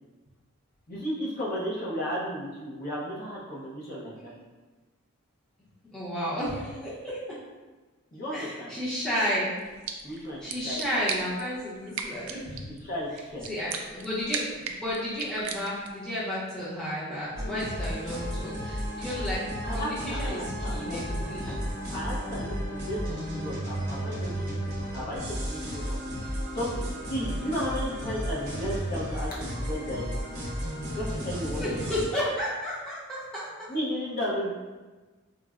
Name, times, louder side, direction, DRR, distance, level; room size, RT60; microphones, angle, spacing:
voice 1, 0.9-4.3 8.1-8.8 10.0-10.8 12.7-13.5 19.6-21.6 21.9-26.0 26.5-26.8 27.1-30.2 31.0-32.0 33.7-34.5, equal, 40° left, -7 dB, 0.7 m, -34 dB
voice 2, 5.9-7.2 8.3-9.5 10.4-12.7 13.5-19.4 19.7-21.5 31.5-33.5, equal, 5° left, -11 dB, 0.7 m, -32 dB
sound 1, 9.6-16.1, right 6 dB, 65° right, 0.3 m, -39 dB
sound 2, 17.4-32.1, equal, 50° right, 0.7 m, -33 dB
4.0 x 2.1 x 2.4 m, 1.2 s
head